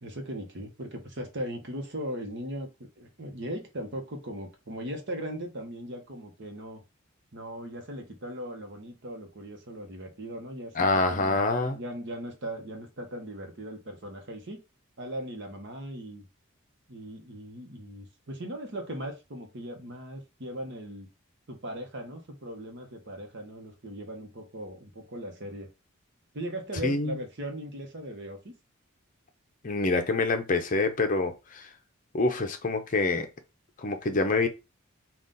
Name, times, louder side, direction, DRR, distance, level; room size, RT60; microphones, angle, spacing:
voice 1, 0.0-2.7 3.0-6.8 7.3-14.6 15.0-16.2 16.9-21.1 21.5-25.7 26.3-28.5, equal, 55° right, 1.0 m, -38 dB
voice 2, 10.8-11.8 26.8-27.2 29.6-31.7 32.1-33.3 33.8-34.5, left 3 dB, 40° left, 0.6 m, -26 dB
3.9 x 2.4 x 3.8 m
head